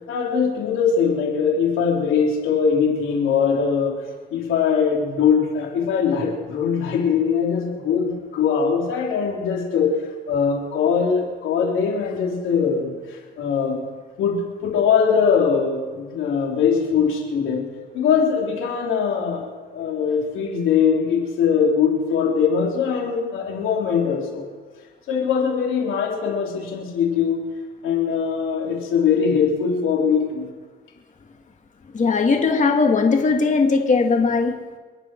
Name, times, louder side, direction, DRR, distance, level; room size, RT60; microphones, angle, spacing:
voice 1, 0.1-4.0 4.3-10.0 10.3-12.9 13.4-13.8 14.2-17.7 17.9-24.5 25.1-27.5 27.8-30.5, left 6 dB, 85° left, -1 dB, 3.7 m, -21 dB
voice 2, 31.9-34.5, left 4 dB, 40° left, 3 dB, 2.1 m, -18 dB
27.5 x 10.5 x 4.6 m, 1.4 s
cardioid pair, 90°, 20 cm